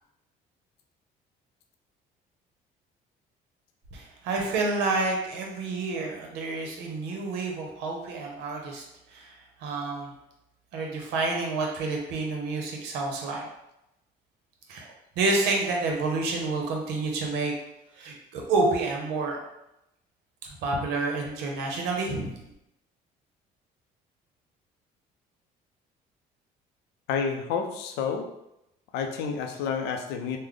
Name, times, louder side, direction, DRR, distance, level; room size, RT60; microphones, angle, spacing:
voice 1, 3.9-8.8 9.1-10.1 10.7-13.5 14.7-14.9 15.2-17.5 17.9-19.4 20.4-22.3, right 3 dB, 90° right, 1 dB, 0.8 m, -29 dB
voice 2, 27.1-28.3 28.9-30.4, left 6 dB, 85° left, 4 dB, 0.5 m, -29 dB
3.3 x 2.1 x 3.7 m, 0.85 s
cardioid pair, 110°, 17 cm